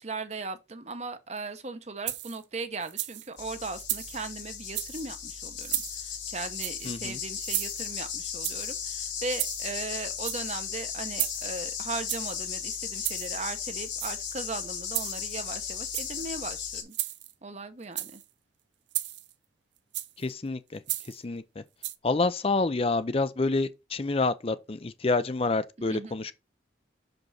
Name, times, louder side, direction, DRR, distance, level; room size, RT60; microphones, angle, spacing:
voice 1, 0.0-17.0 17.4-18.2 25.9-26.1, right 3 dB, 35° right, 0.9 m, -38 dB
sound 1, 2.1-2.4 2.8-3.3 3.8-4.2 4.7-5.1 5.6-6.0 6.6-7.0 7.4-8.0 8.4-8.8 9.3-9.8 10.1-10.6 11.2-11.6 12.1-12.4 13.0-13.4 13.9-14.4 14.9-15.4 15.8-16.3 16.9-17.3 17.8-18.2 18.9-19.3 19.9-20.3 20.9-21.2 21.8-22.0, right 15 dB, 80° right, 0.7 m, -34 dB
sound 2, 3.4-16.8, left 8 dB, 80° left, 2.6 m, -36 dB
voice 2, 6.8-7.2 20.2-20.8 21.1-21.6 22.0-26.3, left 3 dB, 30° left, 0.5 m, -28 dB
6.0 x 5.2 x 4.1 m
head